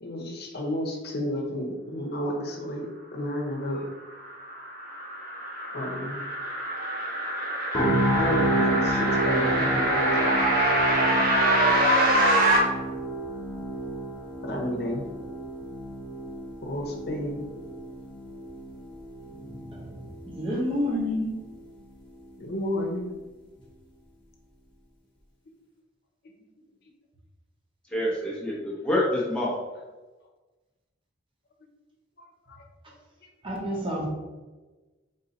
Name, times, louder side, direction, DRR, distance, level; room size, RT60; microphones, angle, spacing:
voice 1, 0.0-2.9 3.1-3.8 5.7-6.2 8.1-10.5 14.4-15.1 16.6-17.4 22.4-23.1 32.5-32.6, left 1 dB, 55° left, 1 dB, 0.8 m, -31 dB
sound 1, 4.2-12.6, right 1 dB, 50° right, 1.0 m, -25 dB
sound 2, 7.7-21.7 22.1-22.3, right 1 dB, 25° left, 1.0 m, -31 dB
voice 2, 19.4-21.3 33.4-34.1, left 1 dB, 30° right, -2 dB, 0.9 m, -30 dB
voice 3, 27.9-29.5, left 1 dB, 5° left, -6 dB, 0.7 m, -27 dB
3.9 x 2.7 x 3.9 m, 1.2 s
head